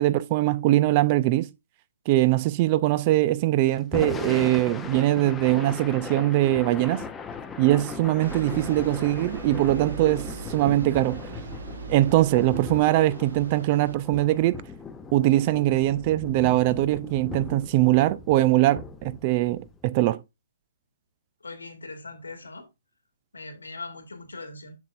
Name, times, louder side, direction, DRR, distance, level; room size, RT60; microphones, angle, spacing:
voice 1, 0.0-1.5 2.1-7.0 7.6-11.2 11.9-14.6 15.1-20.2, right 16 dB, 35° right, 0.4 m, -22 dB
Thunder / Rain, 3.8-20.0, left 5 dB, 10° left, 0.7 m, -38 dB
Bus, 8.2-14.0, right 5 dB, 70° right, 1.0 m, -39 dB
voice 2, 21.4-22.7 23.3-24.8, left 3 dB, 85° left, 1.8 m, -40 dB
7.0 x 6.5 x 2.5 m
hypercardioid pair, 135°, 0 cm